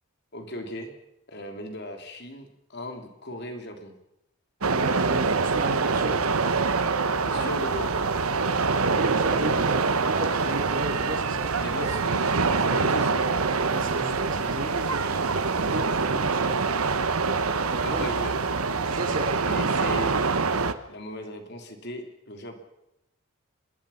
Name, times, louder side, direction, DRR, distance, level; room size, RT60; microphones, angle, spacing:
voice 1, 0.3-0.9 1.3-3.9 7.2-8.0 11.6-13.2 17.8-18.4 19.5-20.1 20.9-22.6, left 1 dB, 50° left, 5 dB, 3.6 m, -37 dB
voice 2, 4.6-6.2 7.3-7.5 8.7-11.9 13.7-15.4 15.7-16.6 17.7-18.1 18.8-19.5, right 1 dB, 40° right, 5 dB, 3.2 m, -34 dB
sound 1, 4.6-20.7, right 4 dB, 90° right, 1.2 m, -25 dB
26.0 x 21.0 x 5.9 m, 0.85 s
head